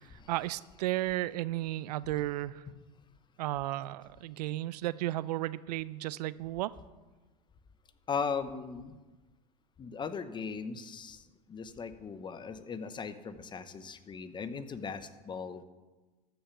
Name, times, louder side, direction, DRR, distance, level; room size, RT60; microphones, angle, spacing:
voice 1, 0.3-2.6 3.4-6.8, right 16 dB, 80° right, 18 dB, 0.5 m, -34 dB
voice 2, 8.1-9.0 9.8-11.2 11.5-15.6, left 5 dB, 25° left, 12 dB, 0.8 m, -38 dB
14.0 x 5.8 x 7.1 m, 1.2 s
hypercardioid pair, 105°, 20 cm